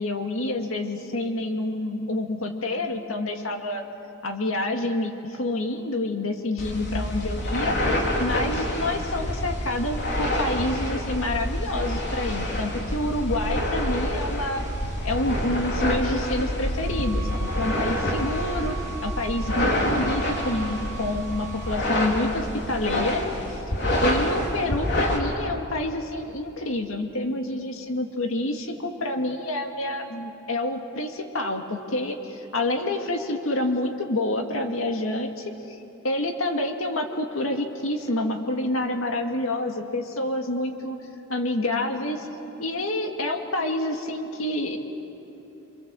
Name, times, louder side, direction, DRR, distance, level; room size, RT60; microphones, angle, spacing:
voice 1, 0.0-3.8 4.2-14.6 15.0-17.3 17.6-23.2 23.5-23.6 24.0-35.8 36.0-41.0 41.3-42.3 42.6-44.8, left 1 dB, 80° left, 4 dB, 2.0 m, -28 dB
sound 1, 6.6-25.2, left 1 dB, 60° left, 3.9 m, -27 dB
sound 2, 16.8-21.8, right 7 dB, 15° left, 5.5 m, -40 dB
28.0 x 26.0 x 7.6 m, 2.9 s
head